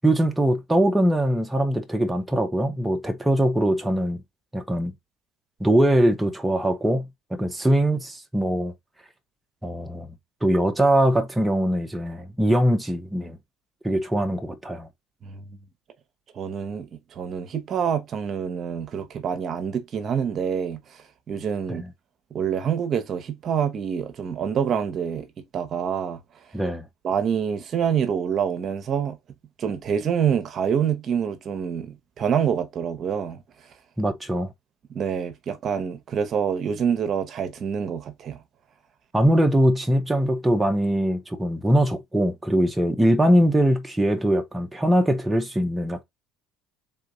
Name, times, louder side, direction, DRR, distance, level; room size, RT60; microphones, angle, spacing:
voice 1, 0.0-4.2 4.5-4.9 5.6-8.7 9.6-10.1 10.4-13.4 13.8-14.9 21.7-21.9 26.5-26.9 34.0-34.5 39.1-46.0, right 1 dB, 10° right, 0.8 m, -22 dB
voice 2, 16.3-21.8 22.3-25.3 25.5-26.2 27.0-29.2 29.6-33.4 34.9-38.4, right 7 dB, 45° right, 1.0 m, -26 dB
3.8 x 3.4 x 3.9 m
supercardioid pair, 95°, 0 cm